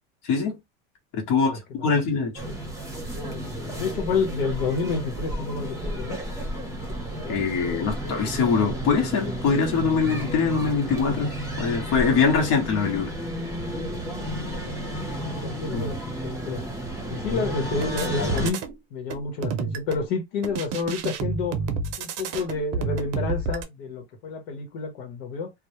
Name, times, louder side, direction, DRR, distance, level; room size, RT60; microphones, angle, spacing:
voice 1, 0.2-0.6 1.1-2.3 7.3-13.1 15.7-15.8, left 5 dB, 60° left, 1.0 m, -23 dB
voice 2, 1.3-1.9 3.8-6.2 15.1-16.0 16.2-16.6 17.1-18.6 18.9-21.6 22.0-25.5, left 4 dB, 85° left, 0.9 m, -29 dB
sound 1, 2.3-18.5, equal, 10° right, 0.8 m, -32 dB
sound 2, 17.8-18.7 19.1-20.1 20.4-23.6, right 5 dB, 55° right, 0.6 m, -30 dB
2.2 x 2.0 x 2.9 m
supercardioid pair, 120°, 30 cm